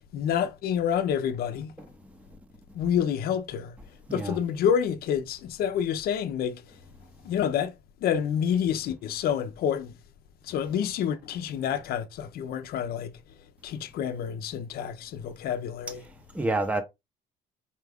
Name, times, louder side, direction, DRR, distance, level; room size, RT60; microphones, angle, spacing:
voice 1, 0.1-1.7 2.7-3.7 4.1-6.6 7.2-7.7 8.0-9.9 10.4-13.1 13.6-16.0, left 8 dB, 65° left, 0.6 m, -28 dB
voice 2, 4.1-4.4 15.9-16.8, right 2 dB, 5° right, 0.6 m, -30 dB
4.4 x 2.3 x 3.4 m
cardioid pair, 110°, 17 cm